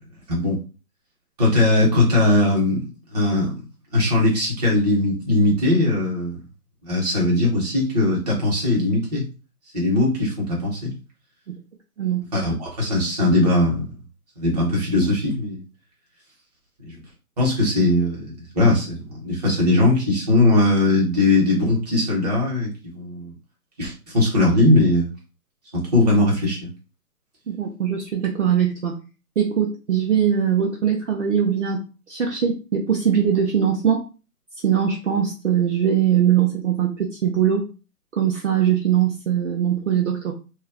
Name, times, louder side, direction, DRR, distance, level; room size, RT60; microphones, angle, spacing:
voice 1, 0.3-0.6 1.4-2.8 3.1-3.6 3.9-6.4 6.8-9.3 9.7-10.9 12.3-13.9 14.4-15.6 16.9-17.0 17.4-23.3 23.8-25.1 25.7-26.7, left 2 dB, 25° right, -3 dB, 0.8 m, -20 dB
voice 2, 27.5-28.9 29.4-31.8 32.1-34.1 34.6-37.7 38.1-40.3, right 8 dB, 50° right, 0 dB, 0.5 m, -21 dB
2.3 x 2.0 x 3.4 m, 0.32 s
hypercardioid pair, 155°, 47 cm